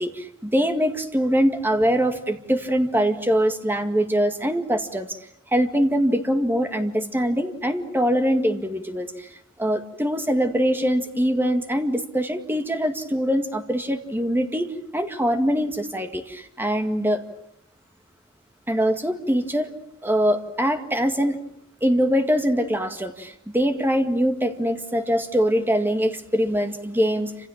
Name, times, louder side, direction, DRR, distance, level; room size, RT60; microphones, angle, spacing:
voice 1, 0.0-5.2 5.5-9.3 9.6-17.2 18.7-19.7 20.0-21.4 21.8-27.3, equal, 10° right, 7 dB, 2.0 m, -23 dB
28.5 x 27.0 x 7.3 m, 0.70 s
head